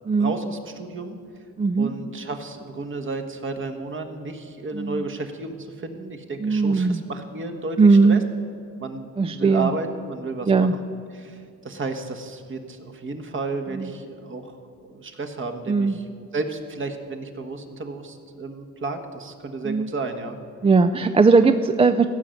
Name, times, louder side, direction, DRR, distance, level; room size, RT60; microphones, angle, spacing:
voice 1, 0.2-1.2 1.8-7.8 8.0-8.2 8.8-10.8 11.1-14.6 14.9-16.0 16.3-20.4, right 3 dB, 40° right, 6 dB, 1.4 m, -32 dB
voice 2, 1.6-1.9 4.7-5.0 6.4-7.0 7.8-8.2 9.2-9.7 10.5-10.7 13.7-13.9 15.7-16.0 19.6-19.9 20.6-22.1, right 4 dB, 20° right, 10 dB, 0.4 m, -18 dB
15.5 x 5.8 x 7.7 m, 2.4 s
cardioid pair, 90°, 30 cm